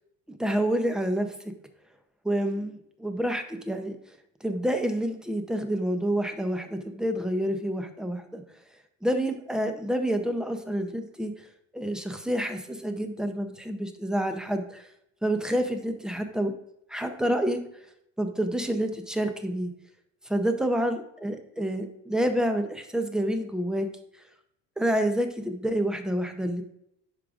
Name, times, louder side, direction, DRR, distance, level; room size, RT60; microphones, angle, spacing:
voice 1, 0.3-1.3 2.2-4.0 4.4-8.4 9.0-11.3 11.7-14.9 15.2-16.6 16.9-17.6 18.2-19.7 20.3-23.9 24.8-26.6, right 1 dB, ahead, 6 dB, 0.5 m, -28 dB
10.5 x 5.0 x 2.4 m, 0.77 s
cardioid pair, 155°, 29 cm